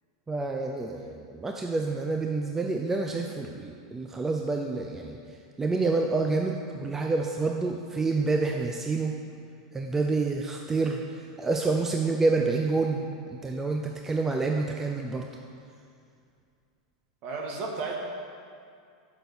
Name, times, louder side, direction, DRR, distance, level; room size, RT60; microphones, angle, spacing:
voice 1, 0.3-5.2 5.6-9.1 9.7-15.3, right 3 dB, 15° right, 2 dB, 0.5 m, -28 dB
voice 2, 17.2-17.9, right 4 dB, 50° right, 0 dB, 1.6 m, -33 dB
6.3 x 5.7 x 7.0 m, 2.3 s
hypercardioid pair, 120°, 3 cm